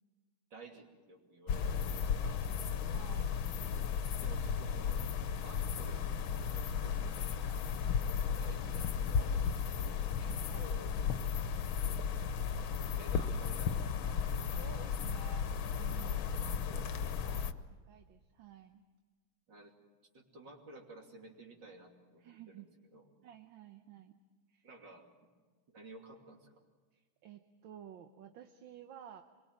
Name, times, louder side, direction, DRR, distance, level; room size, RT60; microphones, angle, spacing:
voice 1, 0.5-2.5 4.2-5.0 5.4-7.9 8.4-10.9 12.9-14.2 16.4-17.4 19.5-19.7 20.1-22.6 22.9-23.1 24.6-25.1 25.7-26.5, right 2 dB, 60° right, 1 dB, 3.5 m, -54 dB
sound 1, 1.5-17.5, left 7 dB, 85° left, 1.7 m, -35 dB
voice 2, 2.9-3.5 7.0-7.1 10.2-10.7 14.5-15.5 15.8-16.4 17.9-18.8 22.2-22.7 23.2-24.2 24.5-24.7 26.9-29.2, right 10 dB, 75° right, 7 dB, 1.7 m, -53 dB
25.5 x 22.5 x 7.5 m, 1.4 s
omnidirectional pair, 2.2 m